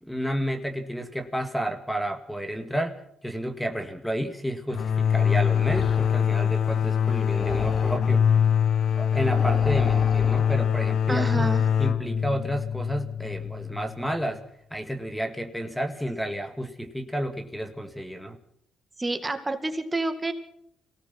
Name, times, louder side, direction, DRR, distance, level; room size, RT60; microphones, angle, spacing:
voice 1, 0.0-8.4 9.0-11.5 11.8-14.4 14.7-18.4, equal, 5° left, 7 dB, 2.1 m, -31 dB
sound 1, 4.7-14.2, left 8 dB, 60° left, 1.0 m, -23 dB
sound 2, 5.6-6.2 7.4-8.1 9.3-10.6, left 2 dB, 35° left, 4.1 m, -35 dB
voice 2, 11.1-11.6 19.0-20.3, right 2 dB, 20° right, 8 dB, 2.2 m, -28 dB
24.0 x 18.0 x 6.0 m, 0.72 s
cardioid pair, 90°, 0 cm